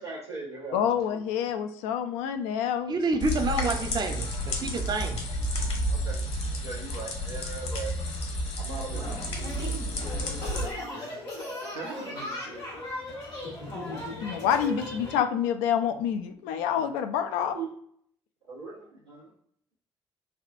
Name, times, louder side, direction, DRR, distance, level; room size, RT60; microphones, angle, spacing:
voice 1, 0.0-1.2 5.9-6.2 6.6-7.9 8.6-9.2 16.7-16.8 17.5-17.7 18.5-19.3, right 4 dB, 90° right, -8 dB, 1.2 m, -39 dB
voice 2, 0.7-3.0 14.2-17.5, left 8 dB, 65° left, 8 dB, 0.4 m, -27 dB
voice 3, 2.9-5.2, right 3 dB, 30° right, 5 dB, 0.6 m, -28 dB
sound 1, 3.2-10.6, equal, 50° left, 0.9 m, -31 dB
sound 2, 9.0-15.1, left 2 dB, 80° left, 1.1 m, -37 dB
voice 4, 10.0-13.1, right 3 dB, 65° right, 2 dB, 0.8 m, -44 dB
3.5 x 2.3 x 2.4 m, 0.65 s
figure-of-eight pair, 45°, 14 cm